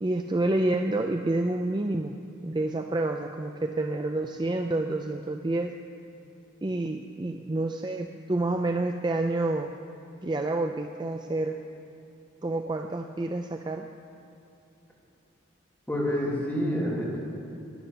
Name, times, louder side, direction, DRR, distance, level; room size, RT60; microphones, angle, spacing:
voice 1, 0.0-5.7 6.6-9.7 10.2-11.6 12.4-13.9, right 2 dB, 20° right, 5 dB, 0.4 m, -28 dB
voice 2, 15.9-17.2, equal, 10° left, -7 dB, 3.5 m, -28 dB
12.0 x 10.5 x 8.9 m, 2.8 s
head